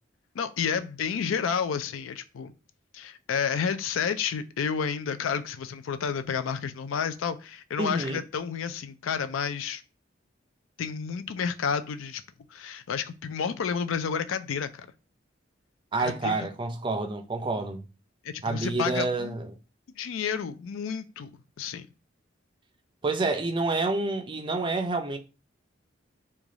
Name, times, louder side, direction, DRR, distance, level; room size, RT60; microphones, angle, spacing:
voice 1, 0.3-2.5 2.9-9.8 10.8-12.2 12.5-14.9 16.0-16.5 18.2-19.3 20.0-21.3 21.6-21.9, left 6 dB, 90° left, 0.4 m, -30 dB
voice 2, 7.8-8.2 15.9-17.8 18.4-19.5 23.0-25.2, right 3 dB, 25° right, 0.4 m, -28 dB
3.1 x 2.3 x 3.8 m
head